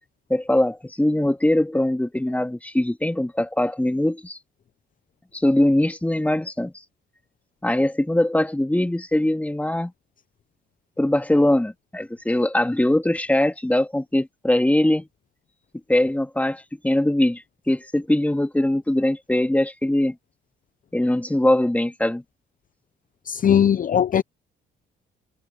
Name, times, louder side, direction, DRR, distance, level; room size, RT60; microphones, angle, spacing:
voice 1, 0.3-4.4 5.3-6.7 7.6-9.9 11.0-15.1 15.9-20.2 20.9-22.2, left 1 dB, 5° left, 2.6 m, -21 dB
voice 2, 23.3-24.2, left 9 dB, 45° left, 0.7 m, -19 dB
cardioid pair, 90°, 20 cm